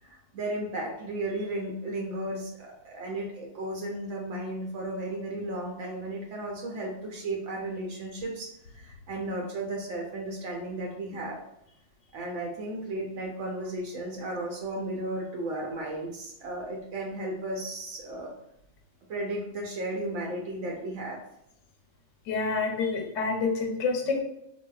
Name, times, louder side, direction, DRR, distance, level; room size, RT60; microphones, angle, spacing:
voice 1, 0.0-11.4 12.1-18.3 19.1-21.2, right 1 dB, 90° right, -1 dB, 0.9 m, -34 dB
voice 2, 22.3-24.2, left 4 dB, 85° left, 2 dB, 1.0 m, -28 dB
4.4 x 2.2 x 2.3 m, 0.79 s
omnidirectional pair, 1.3 m